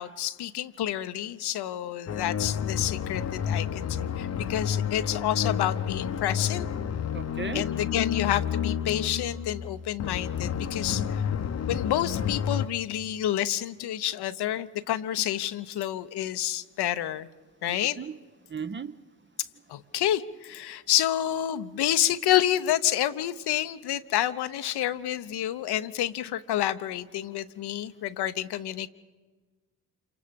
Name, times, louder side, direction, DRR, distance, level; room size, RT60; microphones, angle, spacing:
voice 1, 0.0-6.7 7.5-11.2 11.7-17.3 17.6-18.0 19.7-28.9, left 12 dB, 65° left, 12 dB, 1.0 m, -29 dB
sound 1, 2.1-12.7, left 8 dB, 35° left, 1.0 m, -30 dB
voice 2, 7.1-7.7 17.7-18.1 18.5-18.9, right 6 dB, 25° right, 13 dB, 0.8 m, -36 dB
28.0 x 24.5 x 5.3 m, 1.4 s
hypercardioid pair, 45°, 43 cm